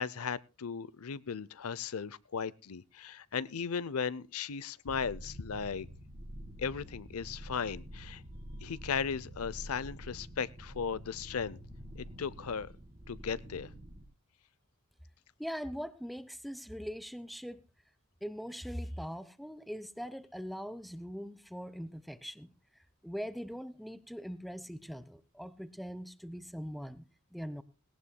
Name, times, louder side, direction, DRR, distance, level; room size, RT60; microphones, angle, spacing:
voice 1, 0.0-5.9 6.6-8.2 8.6-11.6 12.0-12.7 13.1-13.7, left 6 dB, 75° left, 20 dB, 0.6 m, -36 dB
sound 1, 4.9-14.0, equal, 25° right, 2.1 m, -47 dB
voice 2, 15.4-17.6 18.2-22.5 23.0-27.1 27.3-27.6, equal, ahead, 16 dB, 0.8 m, -41 dB
18.0 x 18.0 x 2.2 m, 0.31 s
head